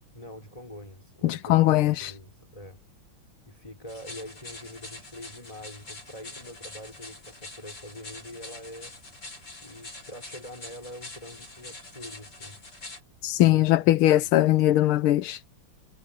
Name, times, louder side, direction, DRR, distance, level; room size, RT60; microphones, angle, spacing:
voice 1, 0.1-2.9 3.5-9.0 9.6-12.6 14.1-14.3, left 1 dB, 15° left, 5.4 m, -44 dB
voice 2, 1.2-2.1 13.2-15.4, left 15 dB, 85° left, 1.6 m, -21 dB
sound 1, 3.9-13.0, left 2 dB, 50° left, 6.7 m, -45 dB
omnidirectional pair, 2.3 m